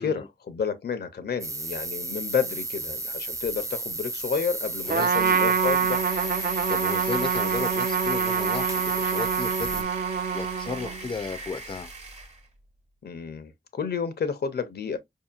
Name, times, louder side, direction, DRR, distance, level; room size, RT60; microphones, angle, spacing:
voice 1, 0.0-6.0 13.0-15.0, left 6 dB, 90° left, 0.7 m, -30 dB
sound 1, 1.4-9.8, right 2 dB, 20° right, 0.5 m, -33 dB
sound 2, 4.7-12.5, right 2 dB, 40° right, 0.9 m, -41 dB
Trumpet, 4.9-11.1, right 7 dB, 65° right, 0.6 m, -26 dB
voice 2, 6.7-11.9, left 4 dB, 30° left, 0.4 m, -34 dB
4.9 x 2.8 x 2.3 m
wide cardioid pair, 120°, 16 cm